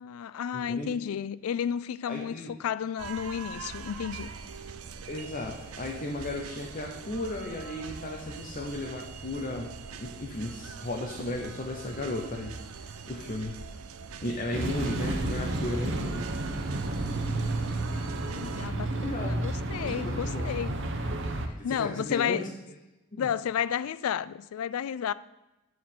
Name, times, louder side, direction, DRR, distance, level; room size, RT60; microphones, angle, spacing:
voice 1, 0.0-4.3 17.6-18.9 19.2-20.9 21.5-22.5 23.2-25.1, left 8 dB, 85° left, 0.3 m, -32 dB
voice 2, 0.5-0.9 2.1-2.5 5.1-12.5 12.8-13.6 14.2-16.3 19.0-19.4 20.0-20.4 21.6-22.5 23.1-23.3, left 2 dB, 40° left, 0.8 m, -35 dB
sound 1, 3.0-18.7, right 5 dB, 85° right, 0.6 m, -43 dB
sound 2, 14.5-21.5, right 2 dB, 60° right, 0.9 m, -31 dB
8.2 x 4.7 x 7.4 m
head